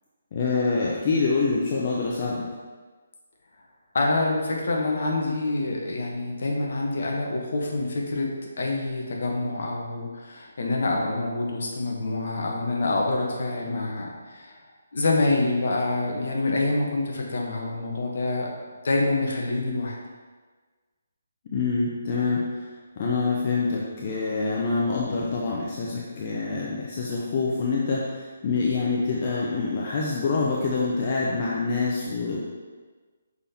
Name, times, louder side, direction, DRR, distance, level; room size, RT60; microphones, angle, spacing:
voice 1, 0.3-2.4 21.5-22.4 23.0-32.4, left 4 dB, 35° left, -4 dB, 0.7 m, -26 dB
voice 2, 3.9-8.3 8.6-14.5 14.9-18.5 18.8-20.0, left 2 dB, 55° left, -1 dB, 1.2 m, -26 dB
6.1 x 5.5 x 2.9 m, 1.4 s
figure-of-eight pair, 140°, 0 cm